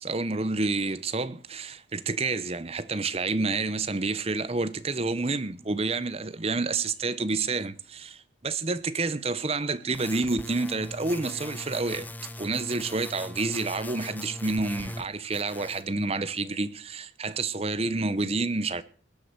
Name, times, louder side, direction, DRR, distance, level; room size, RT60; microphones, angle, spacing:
voice 1, 0.0-12.1 12.4-18.8, right 3 dB, 30° right, 0.8 m, -29 dB
sound 1, 9.9-15.1 15.3-15.9, left 1 dB, 10° left, 0.7 m, -40 dB
19.5 x 7.7 x 6.8 m
head